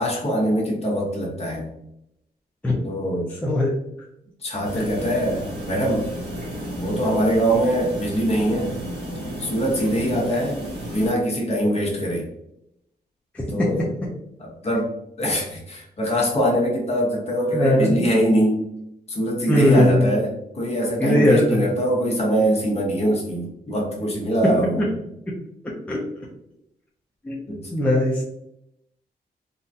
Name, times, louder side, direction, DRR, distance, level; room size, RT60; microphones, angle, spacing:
voice 1, 0.0-1.7 2.8-3.3 4.4-6.0 6.8-8.7 9.4-10.6 10.9-12.3 13.5-13.8 14.4-14.9 15.2-18.7 19.1-20.3 20.5-24.8 27.5-27.7, equal, 40° left, -2 dB, 1.0 m, -23 dB
voice 2, 3.4-3.7 13.3-13.4 17.5-18.1 19.5-20.1 21.0-21.6 24.8-24.9 25.9-26.0 27.2-27.4 27.7-28.2, left 1 dB, 10° left, -4 dB, 0.5 m, -19 dB
sound 1, 4.6-11.1, equal, 70° right, 1.4 m, -33 dB
3.9 x 2.2 x 2.6 m, 0.81 s
wide cardioid pair, 150°, 17 cm